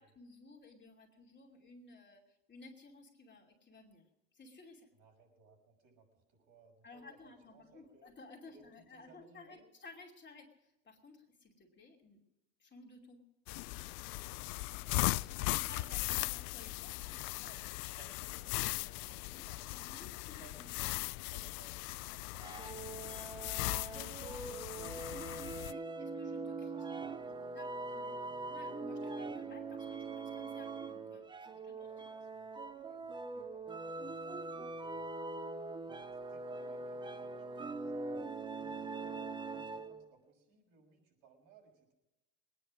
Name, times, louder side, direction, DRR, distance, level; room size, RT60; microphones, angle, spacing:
voice 1, 0.0-2.2 2.5-4.0 4.3-4.9 6.8-12.2 12.6-13.2 15.0-17.5 18.9-20.6 20.9-21.0 23.9-26.7 27.1-28.1 28.5-31.9, left 3 dB, 20° left, -1 dB, 2.7 m, -56 dB
voice 2, 5.0-8.1 8.4-9.6 14.5-15.6 16.0-16.3 17.5-21.7 22.1-24.2 26.6-28.6 31.7-35.4 36.0-38.1 38.5-41.9, right 4 dB, 60° right, 0 dB, 6.4 m, -64 dB
sound 1, 13.5-25.7, left 23 dB, 60° left, 0.5 m, -38 dB
sound 2, 22.4-40.1, right 3 dB, 10° right, 0.5 m, -42 dB
20.5 x 10.0 x 6.2 m, 0.95 s
supercardioid pair, 105°, 48 cm